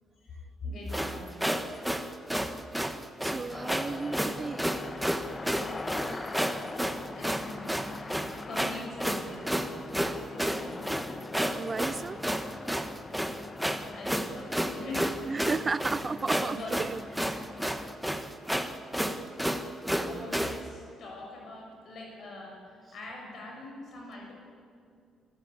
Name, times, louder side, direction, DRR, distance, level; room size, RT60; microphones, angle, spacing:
voice 1, 0.1-1.6 7.1-10.9 13.9-15.2 15.9-16.0 16.3-16.8 18.7-19.5 19.9-24.3, left 2 dB, 60° left, -1 dB, 6.3 m, -43 dB
sound 1, 0.9-20.6, equal, ahead, 1.4 m, -31 dB
voice 2, 3.2-4.7 6.0-6.8 8.2-8.3 9.9-10.1 10.5-10.6 11.5-12.3 12.7-12.9 13.3-13.4 13.8-13.9 15.3-17.5 19.9-20.3, right 4 dB, 30° right, 20 dB, 0.5 m, -35 dB
sound 2, 3.5-18.0, left 3 dB, 25° left, 0.9 m, -43 dB
25.5 x 14.5 x 8.4 m, 2.3 s
cardioid pair, 105°, 0 cm